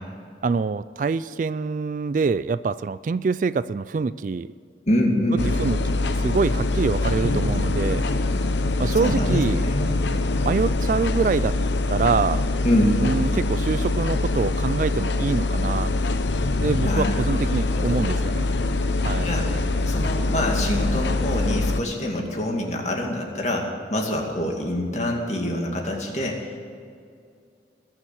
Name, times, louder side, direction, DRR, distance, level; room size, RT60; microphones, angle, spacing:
voice 1, 0.4-4.5 5.3-8.0 8.8-9.7 10.4-11.5 11.9-12.5 13.0-15.9 16.6-18.5 19.0-19.3, right 4 dB, 45° right, 16 dB, 0.3 m, -25 dB
voice 2, 4.9-5.4 9.0-10.0 12.6-13.0 16.8-17.4 17.7-18.1 19.2-19.5 19.9-26.6, left 1 dB, 40° left, 1 dB, 2.4 m, -25 dB
sound 1, 5.4-21.8, left 2 dB, 75° left, 0.8 m, -24 dB
21.0 x 7.2 x 8.2 m, 2.3 s
head